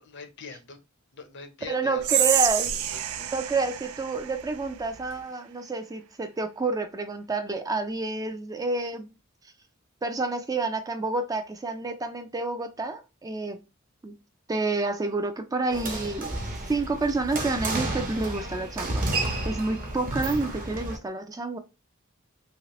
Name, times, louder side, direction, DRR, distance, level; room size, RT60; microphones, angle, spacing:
voice 1, 0.1-0.8 1.1-3.0, left 4 dB, 55° left, 0.6 m, -43 dB
voice 2, 1.7-2.7 3.3-9.1 10.0-13.6 14.0-14.1 14.5-16.4 16.7-19.1 19.4-21.6, right 3 dB, 15° right, 0.4 m, -29 dB
Whispering, 2.0-5.2, right 10 dB, 85° right, 0.4 m, -28 dB
sound 1, 15.7-21.0, right 2 dB, 40° right, 0.9 m, -31 dB
3.0 x 2.8 x 2.9 m
head